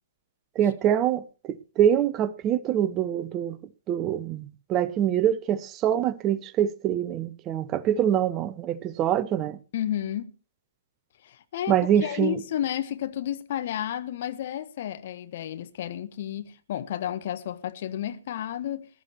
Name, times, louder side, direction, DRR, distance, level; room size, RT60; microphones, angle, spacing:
voice 1, 0.6-3.6 3.9-9.6 11.7-12.4, right 10 dB, 25° right, 0.7 m, -25 dB
voice 2, 9.7-10.3 11.2-18.9, left 11 dB, 45° left, 1.3 m, -32 dB
21.0 x 11.5 x 2.9 m
figure-of-eight pair, 120°, 0 cm